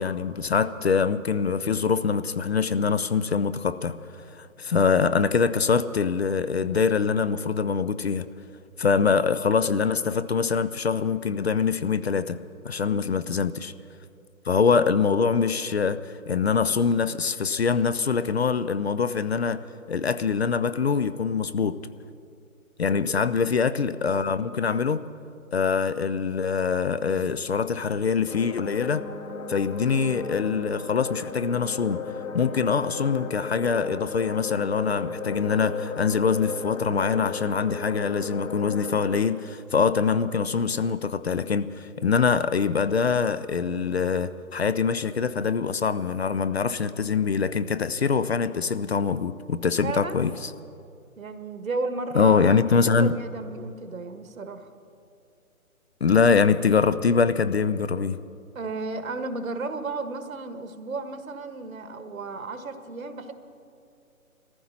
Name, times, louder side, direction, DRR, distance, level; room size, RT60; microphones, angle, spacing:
voice 1, 0.0-4.0 4.4-8.3 8.8-12.4 12.6-13.7 14.5-19.6 19.9-21.8 22.8-25.0 25.5-29.1 29.5-32.0 32.3-50.5 52.1-53.1 56.0-58.2, left 5 dB, 50° left, 13 dB, 0.5 m, -24 dB
voice 2, 22.8-23.5 49.8-50.2 51.2-52.4 52.8-54.7 58.5-63.3, right 3 dB, 70° right, 8 dB, 1.5 m, -34 dB
sound 1, 28.3-39.3, left 4 dB, 65° left, 1.3 m, -35 dB
21.0 x 14.5 x 4.3 m, 2.4 s
figure-of-eight pair, 150°, 43 cm